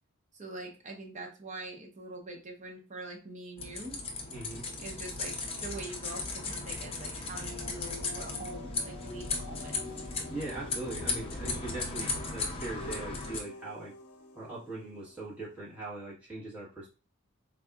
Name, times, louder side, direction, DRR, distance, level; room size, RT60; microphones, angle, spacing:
voice 1, 0.3-4.0 4.8-9.9, right 2 dB, 35° right, 0 dB, 0.7 m, -44 dB
sound 1, 3.6-13.4, left 3 dB, 25° left, 0.5 m, -36 dB
voice 2, 4.3-4.6 10.3-13.9 14.3-16.9, right 2 dB, 5° right, -8 dB, 1.4 m, -41 dB
sound 2, 7.4-15.8, left 3 dB, 80° left, 0.6 m, -47 dB
3.9 x 2.7 x 2.3 m, 0.32 s
head